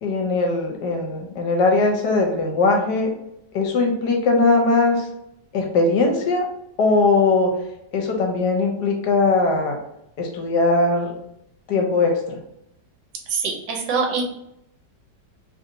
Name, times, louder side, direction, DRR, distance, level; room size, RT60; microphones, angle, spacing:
voice 1, 0.0-3.1 3.5-5.0 5.5-6.5 6.8-7.5 7.9-9.8 10.2-11.2 11.7-12.1, left 3 dB, 75° left, 2 dB, 1.2 m, -20 dB
voice 2, 13.3-14.2, right 5 dB, 80° right, 0 dB, 1.4 m, -24 dB
3.1 x 2.7 x 2.6 m, 0.80 s
omnidirectional pair, 1.9 m